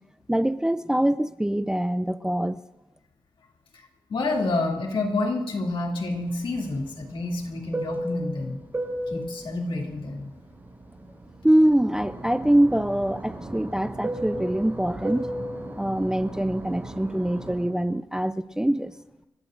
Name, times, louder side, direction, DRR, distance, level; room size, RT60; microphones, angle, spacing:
voice 1, 0.3-2.6 11.4-15.3 15.8-18.9, right 1 dB, 5° right, 13 dB, 0.4 m, -24 dB
voice 2, 4.1-8.6 9.1-10.3, left 2 dB, 65° left, 0 dB, 2.5 m, -28 dB
Fixed-wing aircraft airplane, 6.1-11.5 11.8-17.7, right 1 dB, 25° right, 6.7 m, -35 dB
29.5 x 15.0 x 2.5 m, 1.0 s
cardioid pair, 80°, 9 cm